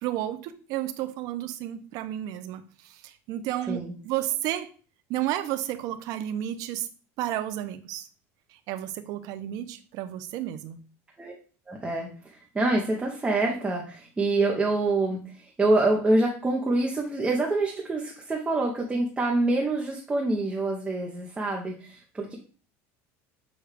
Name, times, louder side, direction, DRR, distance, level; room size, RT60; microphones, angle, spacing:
voice 1, 0.0-4.7 5.1-6.9 7.2-8.1 8.7-10.8, right 13 dB, 60° right, 11 dB, 0.5 m, -32 dB
voice 2, 11.7-22.4, right 2 dB, 15° right, 0 dB, 0.7 m, -26 dB
6.3 x 2.3 x 3.3 m, 0.39 s
cardioid pair, 135°, 7 cm